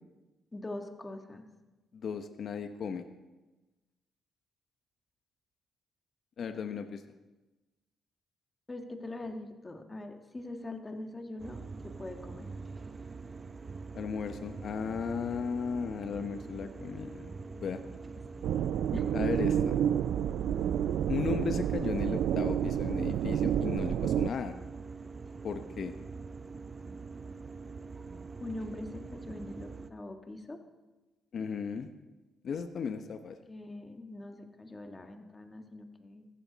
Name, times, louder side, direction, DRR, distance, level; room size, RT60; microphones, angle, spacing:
voice 1, 0.5-1.5 8.7-12.5 18.4-19.1 28.4-30.6 33.0-33.1 33.5-36.3, left 2 dB, 20° left, 5 dB, 1.6 m, -43 dB
voice 2, 1.9-3.0 6.4-7.0 13.9-17.8 19.1-19.8 21.1-24.5 25.4-25.9 31.3-31.9 32.4-33.4, left 6 dB, 55° left, 8 dB, 0.8 m, -35 dB
sound 1, 11.4-29.9, right 4 dB, 30° right, 0.7 m, -44 dB
sound 2, 18.4-24.3, right 10 dB, 75° right, 0.4 m, -29 dB
15.0 x 13.5 x 4.1 m, 1.1 s
cardioid pair, 90°, 0 cm